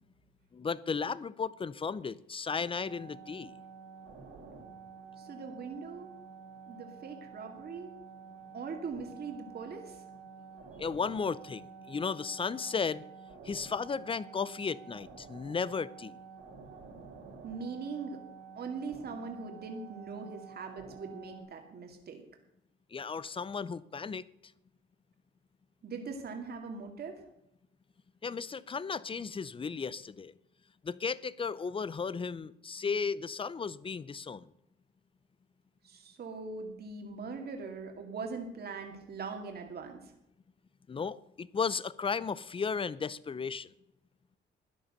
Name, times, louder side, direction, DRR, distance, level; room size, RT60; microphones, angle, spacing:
voice 1, 0.5-3.5 10.8-13.0 13.4-16.2 22.9-24.2 28.2-30.3 30.8-34.5 40.9-43.7, left 5 dB, 25° left, 19 dB, 0.6 m, -35 dB
sound 1, 2.7-21.4, right 5 dB, 85° right, 4.5 m, -50 dB
voice 2, 5.2-6.1 6.7-7.9 8.5-10.0 17.4-18.2 18.6-22.2 25.8-27.2 35.8-40.1, right 4 dB, 55° right, 3 dB, 2.2 m, -41 dB
13.0 x 10.0 x 6.7 m, 0.79 s
cardioid pair, 90°, 20 cm